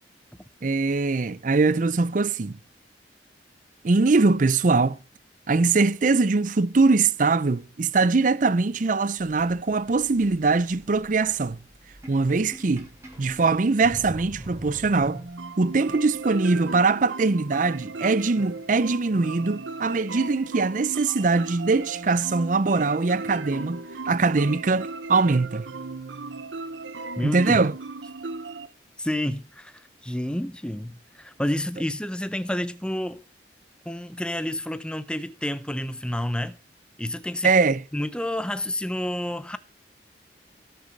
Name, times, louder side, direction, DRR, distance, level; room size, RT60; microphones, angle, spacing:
voice 1, 0.6-2.5 3.8-5.0 5.5-11.6 12.1-12.9 13.2-15.2 15.6-25.7 27.2-27.7 37.4-37.8, right 3 dB, 45° right, 0.5 m, -22 dB
sound 1, 9.2-15.7, right 1 dB, 15° right, 2.9 m, -43 dB
sound 2, 14.9-28.7, right 3 dB, 85° right, 0.9 m, -36 dB
voice 2, 27.2-27.6 29.0-33.2 33.9-36.6 37.0-37.5 37.9-39.6, left 1 dB, 5° left, 0.6 m, -29 dB
18.0 x 6.8 x 4.6 m
head